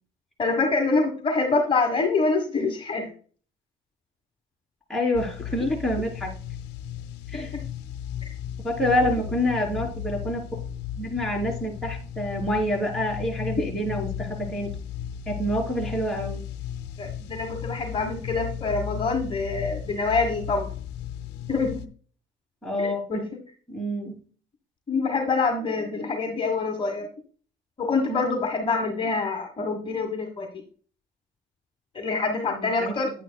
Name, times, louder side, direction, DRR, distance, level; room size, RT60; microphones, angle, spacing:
voice 1, 0.4-3.1 7.3-7.6 9.0-9.1 17.0-20.7 21.5-21.8 22.8-23.2 24.9-27.1 27.8-30.5 31.9-33.1, left 3 dB, 30° left, 3 dB, 1.3 m, -26 dB
voice 2, 4.9-6.3 7.3-7.5 8.6-10.4 11.0-14.7 15.3-16.4 22.6-23.3 23.7-24.2 32.5-32.9, equal, ahead, -2 dB, 3.3 m, -27 dB
sound 1, 5.1-21.9, left 9 dB, 90° left, 0.6 m, -35 dB
9.7 x 8.8 x 2.2 m, 0.42 s
cardioid pair, 110°, 17 cm